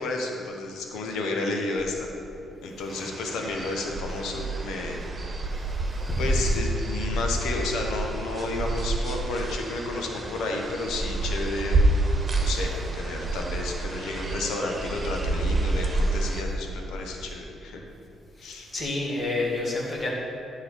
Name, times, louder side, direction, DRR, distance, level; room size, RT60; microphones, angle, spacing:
voice 1, 0.0-2.1 2.6-5.0 6.2-17.9 18.4-18.7, left 2 dB, 70° left, 2 dB, 1.1 m, -31 dB
sound 1, 2.9-16.4, right 2 dB, 35° right, 1.3 m, -29 dB
voice 2, 18.4-20.1, left 2 dB, 40° left, -3 dB, 2.1 m, -29 dB
10.5 x 3.9 x 6.6 m, 2.7 s
hypercardioid pair, 45°, 0 cm